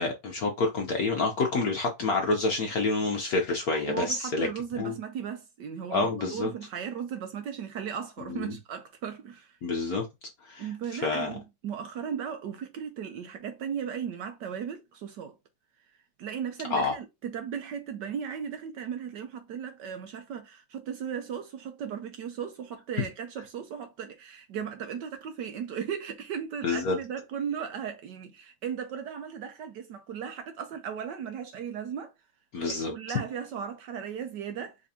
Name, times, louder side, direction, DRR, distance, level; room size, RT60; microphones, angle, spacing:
voice 1, 0.0-4.5 4.8-4.9 5.9-6.5 8.3-8.5 9.6-10.1 10.4-11.3 16.7-16.9 26.6-27.0 32.5-32.9, left 3 dB, 60° left, 0.9 m, -28 dB
voice 2, 3.7-9.6 10.6-15.3 16.2-32.1 32.7-34.8, right 7 dB, 70° right, 1.1 m, -36 dB
5.1 x 3.4 x 2.7 m
omnidirectional pair, 2.3 m